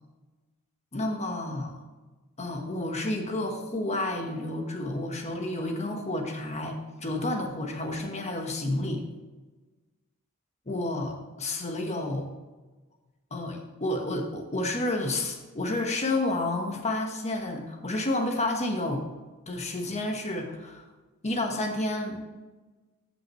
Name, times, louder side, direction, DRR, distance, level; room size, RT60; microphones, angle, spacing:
voice 1, 0.9-1.8 2.4-6.7 7.0-9.0 10.7-12.3 13.3-19.0 19.5-20.8 21.2-22.2, left 2 dB, 30° left, 3 dB, 1.3 m, -30 dB
14.5 x 6.1 x 3.1 m, 1.2 s
head